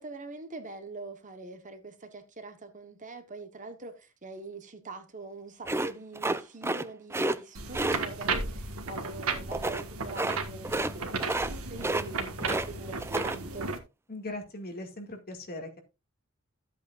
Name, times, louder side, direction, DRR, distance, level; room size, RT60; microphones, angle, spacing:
voice 1, 0.0-13.7, right 3 dB, 35° right, 1.2 m, -44 dB
sound 1, 5.6-6.8 7.1-7.4 7.7-8.0 9.5-9.8 10.1-10.4 10.6-10.9 11.2-11.5 11.8-12.7 13.0-13.4, right 2 dB, 10° right, 0.5 m, -30 dB
sound 2, 7.5-13.8, right 4 dB, 85° right, 1.6 m, -34 dB
voice 2, 14.1-15.8, left 2 dB, 45° left, 2.2 m, -39 dB
13.0 x 8.1 x 2.5 m
head